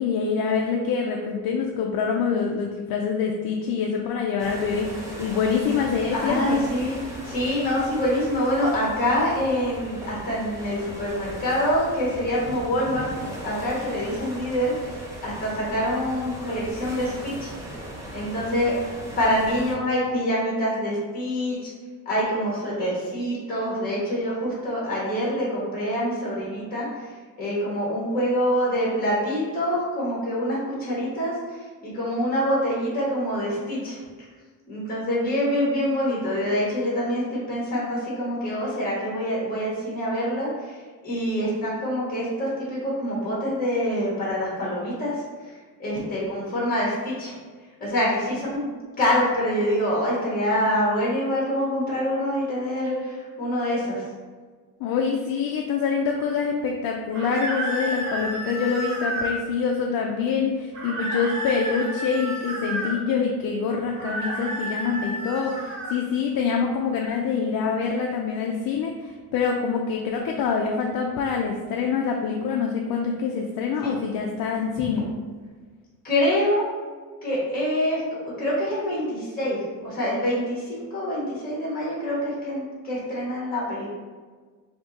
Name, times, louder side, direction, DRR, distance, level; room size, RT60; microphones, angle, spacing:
voice 1, 0.0-6.6 54.8-75.1, left 5 dB, 75° left, 1 dB, 0.5 m, -25 dB
sound 1, 4.4-19.7, right 1 dB, 10° right, 0.8 m, -38 dB
voice 2, 6.1-6.9 7.2-17.5 18.1-18.7 19.2-21.7 22.0-26.9 27.4-31.3 31.8-34.0 34.7-40.5 41.0-45.2 45.8-47.3 47.8-48.6 49.0-54.0 73.8-73.9 76.0-76.6 77.2-78.0 78.4-83.9, equal, 25° left, -6 dB, 1.4 m, -25 dB
sound 2, 57.1-59.4 60.7-62.9 63.9-66.0, right 1 dB, 55° right, 1.3 m, -31 dB
3.5 x 2.8 x 4.0 m, 1.5 s
cardioid pair, 160°, 35 cm